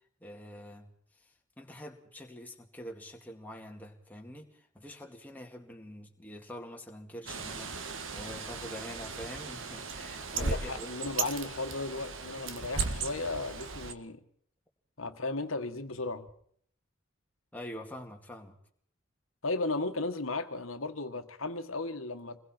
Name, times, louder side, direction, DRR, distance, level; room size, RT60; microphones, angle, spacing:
voice 1, 0.2-0.9 1.2-10.9 17.5-18.6, equal, 10° left, 2.2 m, -45 dB
Bird, 7.3-13.9, right 4 dB, 70° right, 1.7 m, -37 dB
voice 2, 10.3-14.2 15.0-16.3 19.4-22.4, left 3 dB, 80° left, 1.7 m, -35 dB
27.5 x 21.0 x 4.5 m
head